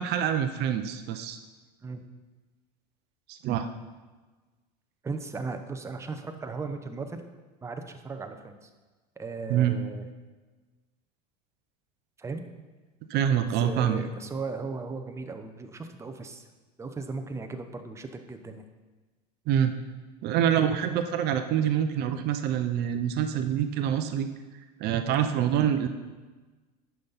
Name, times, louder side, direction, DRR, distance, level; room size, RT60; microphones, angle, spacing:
voice 1, 0.0-1.4 3.3-3.7 9.5-9.8 13.1-14.0 19.5-19.7 20.2-24.3 24.8-25.9, right 9 dB, 50° right, 9 dB, 0.6 m, -26 dB
voice 2, 5.0-7.2 7.6-8.7 9.2-10.1 12.2-12.4 13.6-16.4 16.8-18.6, right 4 dB, 15° right, 6 dB, 0.7 m, -37 dB
10.5 x 5.6 x 4.1 m, 1.3 s
supercardioid pair, 100°, 21 cm